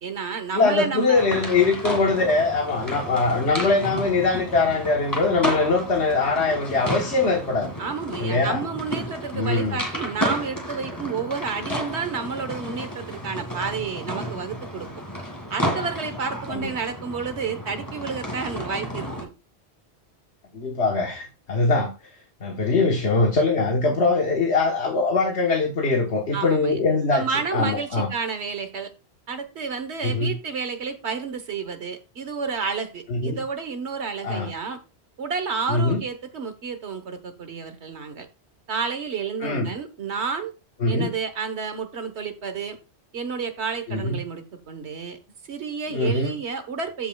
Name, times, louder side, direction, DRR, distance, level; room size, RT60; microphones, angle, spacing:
voice 1, 0.0-1.2 7.8-14.9 15.5-19.3 26.3-26.8 27.1-28.9 29.3-34.8 35.2-38.3 38.7-40.5 40.9-42.8 43.1-45.2 45.5-47.1, right 5 dB, 90° right, 9 dB, 1.5 m, -30 dB
voice 2, 0.5-7.7 8.2-8.6 9.3-9.8 16.5-16.7 20.5-21.9 22.4-27.2 27.5-28.1 30.0-30.3 33.1-33.4 34.2-34.5 35.7-36.0 39.4-39.7 40.8-41.1 43.9-44.2 45.9-46.3, left 3 dB, 85° left, 1 dB, 1.6 m, -22 dB
sound 1, 1.1-19.2, equal, 20° left, 2.1 m, -32 dB
14.5 x 5.3 x 2.3 m, 0.28 s
omnidirectional pair, 1.1 m